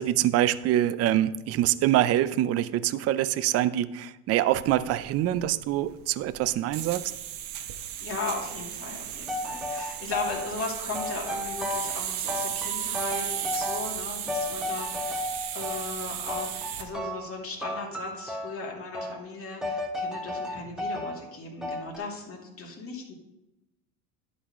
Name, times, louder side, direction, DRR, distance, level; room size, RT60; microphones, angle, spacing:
voice 1, 0.0-7.1, right 13 dB, 35° right, 15 dB, 0.4 m, -25 dB
sound 1, 4.5-16.9, right 11 dB, 55° right, 1.0 m, -35 dB
voice 2, 8.0-23.1, left 3 dB, 30° left, 0 dB, 2.4 m, -37 dB
sound 2, 9.3-10.5 10.9-12.0 12.3-14.0 14.3-15.9 16.3-17.3 17.6-18.6 18.9-19.2 19.6-21.2 21.6-22.0, left 2 dB, ahead, 1.0 m, -33 dB
11.0 x 4.2 x 5.0 m, 0.95 s
supercardioid pair, 95°, 46 cm